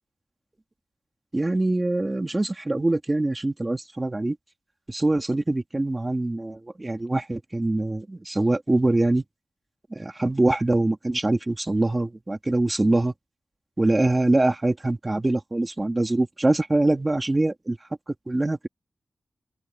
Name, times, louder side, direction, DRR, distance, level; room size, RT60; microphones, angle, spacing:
voice 1, 1.3-4.4 4.9-9.2 10.0-13.1 13.8-17.8 18.3-18.7, right 2 dB, 20° right, 2.7 m, -24 dB
open air
wide cardioid pair, 115°, 0 cm